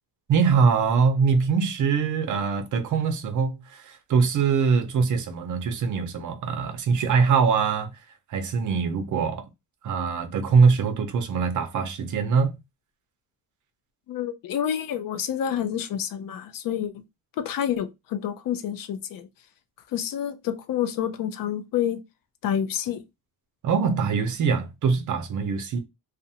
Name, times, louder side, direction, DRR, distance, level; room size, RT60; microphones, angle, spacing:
voice 1, 0.3-7.9 8.3-9.4 9.8-12.6 23.6-25.8, right 5 dB, 55° right, 0.6 m, -23 dB
voice 2, 14.1-16.9 17.4-19.3 19.9-22.0 22.4-23.0, left 9 dB, 65° left, 0.5 m, -28 dB
2.5 x 2.1 x 2.7 m
cardioid pair, 135°, 37 cm